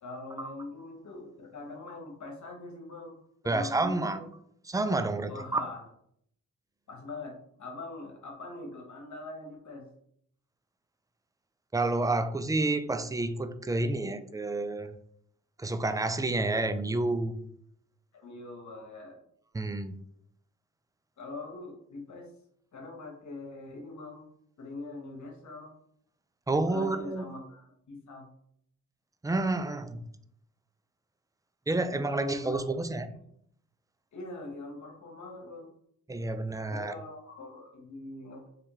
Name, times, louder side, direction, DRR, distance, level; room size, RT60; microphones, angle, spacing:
voice 1, 0.0-3.2 3.4-4.3 5.3-5.8 6.9-9.9 18.1-19.1 21.2-22.3 22.7-24.3 24.6-25.7 26.5-28.2 31.9-32.6 33.0-33.2 34.1-35.7 36.7-38.5, left 2 dB, 65° left, 1.2 m, -42 dB
voice 2, 3.5-4.2 4.7-5.6 11.7-15.0 15.6-17.4 19.5-19.9 26.5-27.2 29.2-30.1 31.7-33.1 36.1-36.9, right 2 dB, 10° right, 0.3 m, -29 dB
3.4 x 3.2 x 3.1 m
cardioid pair, 60°, 31 cm